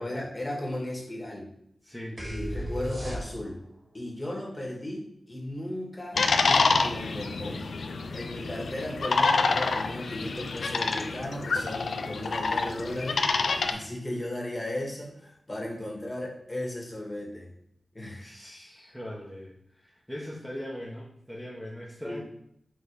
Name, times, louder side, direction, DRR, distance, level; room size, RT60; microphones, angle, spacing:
voice 1, 0.0-1.5 2.2-3.6 3.9-7.6 8.1-17.5 17.9-18.3 22.0-22.2, left 1 dB, 20° left, -2 dB, 1.7 m, -36 dB
voice 2, 1.8-2.2 18.2-22.2, equal, ahead, -6 dB, 1.1 m, -40 dB
sound 1, 2.2-3.7, equal, 35° right, 1.8 m, -34 dB
sound 2, 6.2-13.7, left 4 dB, 80° left, 0.4 m, -27 dB
4.7 x 3.9 x 5.0 m, 0.72 s
wide cardioid pair, 105°, 0 cm